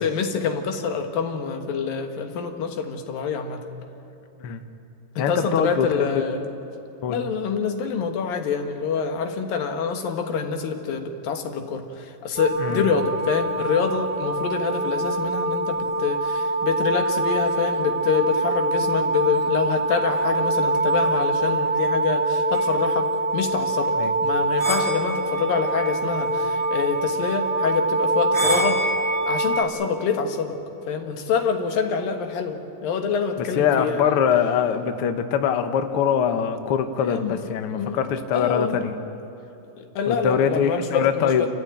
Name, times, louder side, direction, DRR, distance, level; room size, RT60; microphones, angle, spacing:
voice 1, 0.0-3.6 5.2-6.5 7.1-28.8 29.2-30.6 30.9-34.2 37.0-37.4 37.7-38.0 38.3-38.8 39.8-41.5, left 6 dB, 70° left, 4 dB, 3.2 m, -26 dB
voice 2, 5.2-6.2 7.0-7.2 12.6-12.9 24.0-24.1 33.4-39.0 40.1-41.5, left 7 dB, 85° left, 7 dB, 1.2 m, -23 dB
sound 1, 12.4-29.6, right 2 dB, 20° right, 1.6 m, -24 dB
30.0 x 14.5 x 9.0 m, 2.9 s
omnidirectional pair, 4.3 m